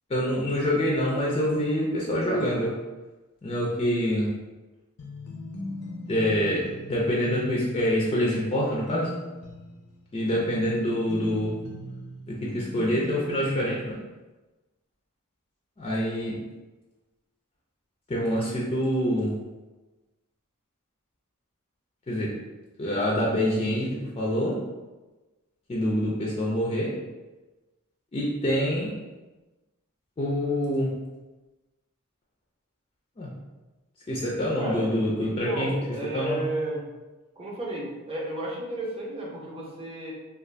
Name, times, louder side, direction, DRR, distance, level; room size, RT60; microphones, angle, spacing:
voice 1, 0.1-2.8 3.4-4.4 6.1-9.2 10.1-11.6 12.3-14.0 15.8-16.4 18.1-19.5 22.1-22.4 22.8-24.6 25.7-27.0 28.1-29.0 30.2-30.9 33.2-33.3 34.1-35.7 36.1-36.4, equal, 25° left, -4 dB, 0.4 m, -26 dB
sound 1, 5.0-13.9, left 2 dB, 85° left, 0.5 m, -39 dB
voice 2, 34.6-36.8 37.4-40.1, right 1 dB, 25° right, -3 dB, 0.6 m, -32 dB
2.5 x 2.3 x 3.2 m, 1.2 s
head